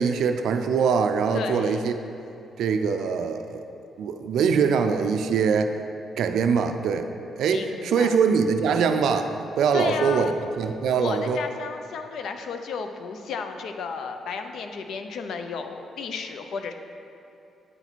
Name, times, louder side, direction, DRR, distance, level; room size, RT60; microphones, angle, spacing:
voice 1, 0.0-1.9 2.6-3.6 4.0-5.7 6.2-7.1 7.4-11.4, right 6 dB, 75° right, 7 dB, 0.4 m, -23 dB
voice 2, 1.3-1.8 7.5-8.2 9.7-10.4 11.0-16.7, left 5 dB, 65° left, 7 dB, 0.5 m, -33 dB
8.9 x 4.5 x 4.1 m, 2.7 s
cardioid pair, 155°, 0 cm